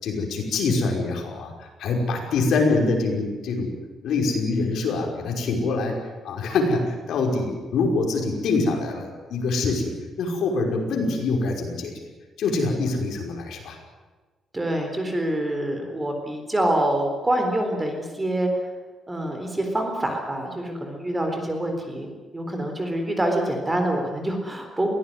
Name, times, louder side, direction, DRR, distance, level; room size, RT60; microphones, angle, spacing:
voice 1, 0.0-3.8 4.0-6.0 6.2-11.9 12.4-13.8, left 3 dB, 70° left, 1 dB, 5.5 m, -25 dB
voice 2, 14.5-18.7 19.1-24.9, right 1 dB, 15° right, 4 dB, 3.9 m, -26 dB
22.5 x 17.0 x 9.7 m, 1.3 s
cardioid pair, 165°, 0 cm